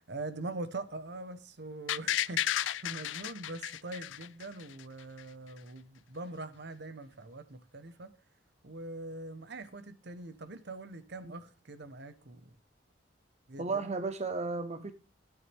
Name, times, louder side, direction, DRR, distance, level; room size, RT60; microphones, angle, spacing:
voice 1, 0.0-8.1 8.6-12.5 13.5-13.8, right 2 dB, 65° right, 1.2 m, -43 dB
sound 1, 1.9-4.8 5.2-5.3, left 11 dB, 90° left, 0.4 m, -33 dB
voice 2, 13.6-14.9, right 3 dB, 40° right, 0.7 m, -34 dB
12.5 x 9.4 x 3.5 m
head